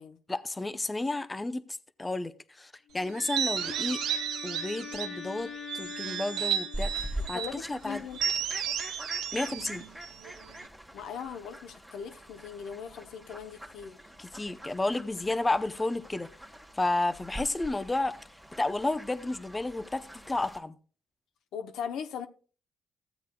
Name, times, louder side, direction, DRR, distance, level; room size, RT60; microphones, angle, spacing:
voice 1, 0.3-4.0 4.4-8.0 9.3-9.8 14.2-16.3 16.7-18.2 18.6-20.8, left 2 dB, 20° left, 0.6 m, -32 dB
Wind instrument woodwind instrument, 2.9-7.4, left 8 dB, 40° left, 1.3 m, -44 dB
sound 1, 3.2-5.2 5.7-7.6 8.1-10.7, right 9 dB, 90° right, 0.7 m, -33 dB
Fowl, 6.7-20.6, right 1 dB, ahead, 1.3 m, -44 dB
voice 2, 7.3-8.2 10.9-14.0 21.5-22.3, left 7 dB, 80° left, 0.7 m, -39 dB
15.0 x 8.1 x 2.2 m
cardioid pair, 90°, 0 cm